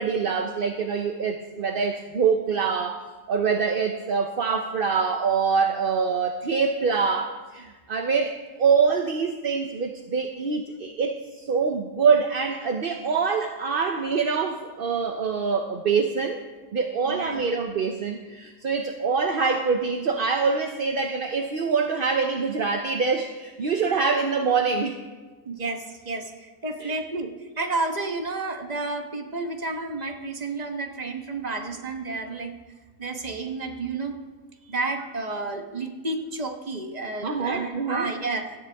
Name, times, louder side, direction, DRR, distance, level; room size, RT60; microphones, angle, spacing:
voice 1, 0.0-16.4 16.7-25.0 26.8-27.0 37.2-38.1, right 5 dB, 45° right, 4 dB, 0.8 m, -25 dB
voice 2, 17.1-17.4 25.5-32.5 33.0-34.2 34.7-38.5, right 3 dB, 30° right, 4 dB, 1.2 m, -31 dB
17.5 x 13.0 x 3.5 m, 1.3 s
omnidirectional pair, 1.6 m